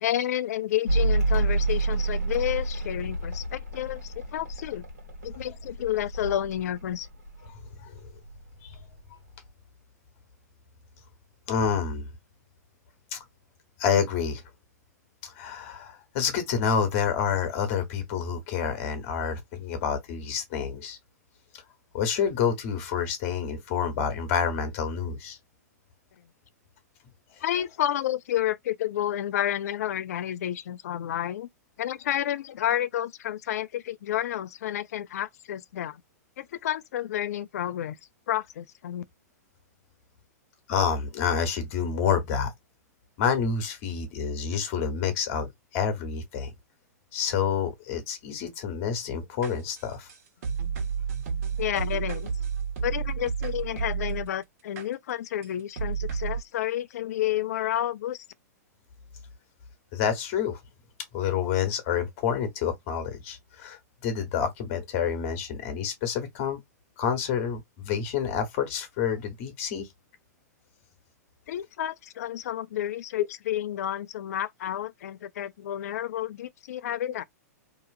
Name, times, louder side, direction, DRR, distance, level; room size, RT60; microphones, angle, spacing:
voice 1, 0.0-4.8 5.2-7.1 27.4-31.5 31.8-36.0 36.4-38.0 38.3-39.0 51.6-52.3 52.8-58.2 71.5-77.2, left 12 dB, 65° left, 0.4 m, -30 dB
Mechanical fan, 0.9-7.7 8.0-8.8, right 2 dB, 80° right, 1.3 m, -29 dB
voice 2, 7.8-8.1 8.6-8.8 11.5-12.1 13.1-13.2 13.8-14.4 15.2-21.0 21.9-25.4 40.7-42.5 43.2-46.5 47.1-50.1 59.9-60.6 61.1-66.6 67.0-69.9, left 7 dB, 50° left, 1.1 m, -28 dB
sound 1, 49.4-54.3 54.8-54.9 55.4-55.5 55.8-56.4, right 6 dB, 60° right, 1.3 m, -31 dB
2.8 x 2.4 x 2.4 m
hypercardioid pair, 110°, 9 cm